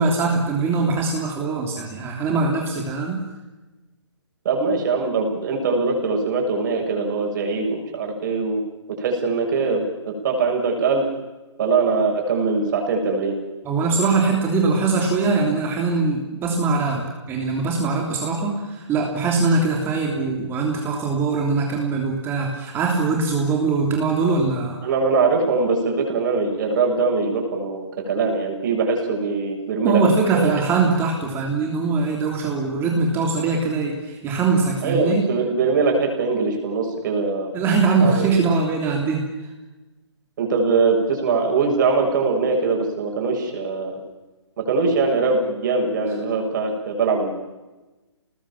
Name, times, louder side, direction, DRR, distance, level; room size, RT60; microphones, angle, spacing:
voice 1, 0.0-3.2 13.6-24.8 29.8-35.2 37.5-39.2, right 4 dB, 15° right, 0 dB, 3.3 m, -22 dB
voice 2, 4.4-8.6 8.9-11.0 11.6-13.4 24.8-30.0 30.3-30.5 34.8-37.6 38.0-38.3 40.4-44.0 44.6-47.3, right 4 dB, 45° right, 2 dB, 7.4 m, -22 dB
28.0 x 20.0 x 7.5 m, 1.1 s
hypercardioid pair, 150°, 15 cm